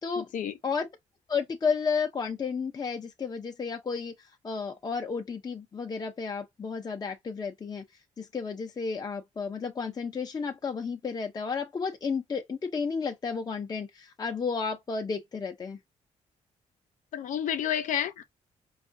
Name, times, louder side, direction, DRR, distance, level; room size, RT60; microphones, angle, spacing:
voice 1, 0.2-0.5 17.1-18.2, left 9 dB, 80° left, 0.7 m, -30 dB
voice 2, 1.3-4.1 4.4-7.8 8.2-15.8, left 5 dB, 30° left, 0.6 m, -32 dB
5.2 x 2.4 x 2.6 m
cardioid pair, 105°, 13 cm